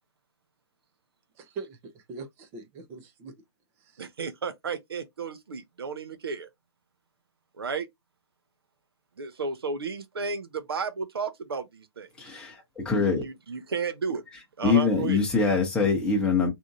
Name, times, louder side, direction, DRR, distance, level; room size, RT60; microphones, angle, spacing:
voice 1, 1.4-3.3 3.8-4.1, right 4 dB, 15° right, 0.5 m, -42 dB
voice 2, 4.0-6.5 7.6-7.9 9.2-12.1 13.2-14.2 14.6-15.2, right 5 dB, 60° right, 0.7 m, -33 dB
voice 3, 12.2-13.2 14.6-16.5, left 4 dB, 5° left, 0.9 m, -24 dB
3.5 x 2.7 x 2.7 m
figure-of-eight pair, 135°, 14 cm